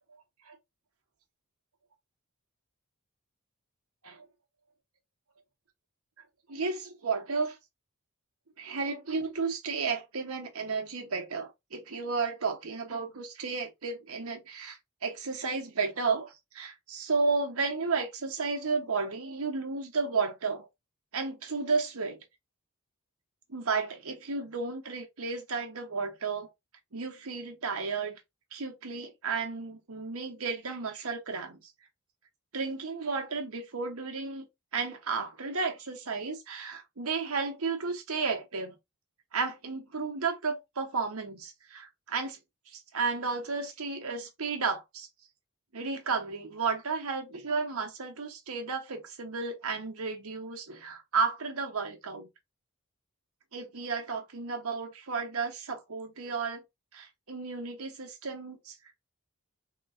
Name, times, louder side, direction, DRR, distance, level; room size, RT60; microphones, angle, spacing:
voice 1, 6.5-7.6 8.6-20.7 21.1-22.2 23.5-26.5 26.9-28.2 28.5-31.6 32.5-34.5 34.7-38.8 39.3-42.4 42.7-45.1 45.7-52.3 53.5-56.6 56.9-58.8, right 4 dB, 85° right, 1.0 m, -33 dB
3.8 x 2.9 x 2.5 m
head